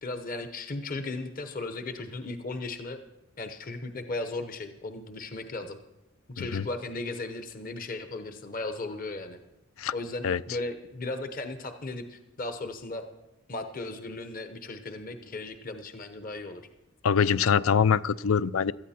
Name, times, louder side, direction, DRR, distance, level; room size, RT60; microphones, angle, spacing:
voice 1, 0.0-3.0 3.4-5.8 6.3-9.4 9.9-13.0 13.5-16.6, left 2 dB, 40° left, 7 dB, 0.9 m, -36 dB
voice 2, 17.0-18.7, left 7 dB, 75° left, 18 dB, 0.4 m, -24 dB
17.5 x 13.0 x 4.3 m, 0.94 s
head